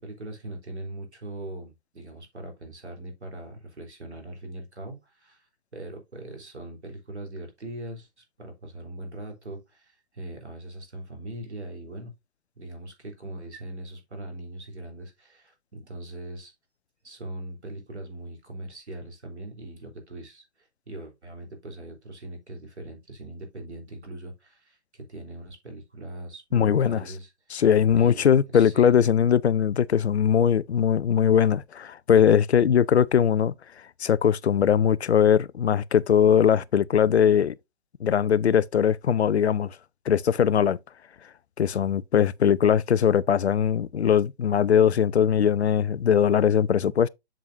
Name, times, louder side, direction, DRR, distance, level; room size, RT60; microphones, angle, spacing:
voice 1, 0.0-12.1 12.6-16.5 17.0-27.6 28.0-28.3 28.5-28.9, right 1 dB, 75° right, 3.6 m, -41 dB
voice 2, 26.5-27.0 27.5-33.5 34.0-37.5 38.0-39.8 40.1-40.8 41.6-47.1, left 8 dB, 70° left, 0.5 m, -20 dB
7.4 x 7.0 x 2.6 m
figure-of-eight pair, 135°, 34 cm